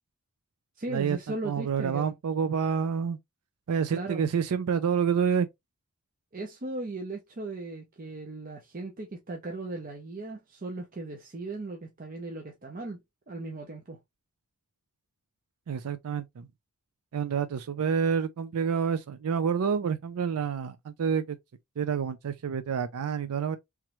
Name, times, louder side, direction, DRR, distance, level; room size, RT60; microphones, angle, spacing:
voice 1, 0.8-2.2 3.9-4.3 6.3-13.0 13.3-14.0, right 2 dB, 40° right, 0.6 m, -37 dB
voice 2, 1.4-3.2 3.7-5.5 15.7-16.5 17.1-21.4 21.8-23.6, right 6 dB, 80° right, 0.4 m, -28 dB
3.5 x 3.0 x 3.0 m
head